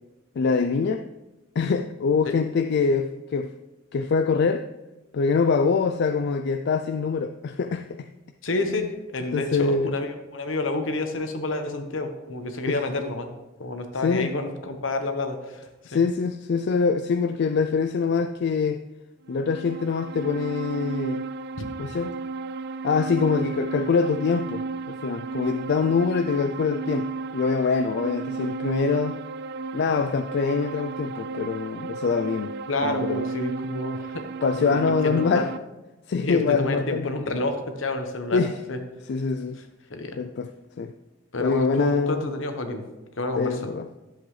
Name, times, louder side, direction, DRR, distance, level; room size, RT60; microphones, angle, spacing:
voice 1, 0.4-1.0 1.6-3.5 3.9-4.7 5.1-8.1 8.5-8.9 9.3-9.9 12.7-12.8 14.0-14.3 15.9-18.8 19.3-21.2 21.8-22.1 22.8-29.2 29.7-32.5 32.8-33.3 34.4-35.5 36.1-37.1 38.3-38.5 39.1-39.6 40.2-40.5 40.8-40.9 41.4-42.2 43.4-43.8, left 5 dB, 60° left, 7 dB, 0.4 m, -24 dB
voice 2, 8.4-8.8 9.1-13.3 13.6-16.0 32.7-34.2 34.6-34.8 35.0-35.5 36.2-38.4 38.7-38.8 39.9-40.2 41.3-42.8 43.2-43.6, left 2 dB, 75° left, 6 dB, 1.1 m, -29 dB
sound 1, 19.3-35.6, right 4 dB, 55° right, 0.3 m, -34 dB
10.5 x 7.8 x 3.2 m, 1.1 s
head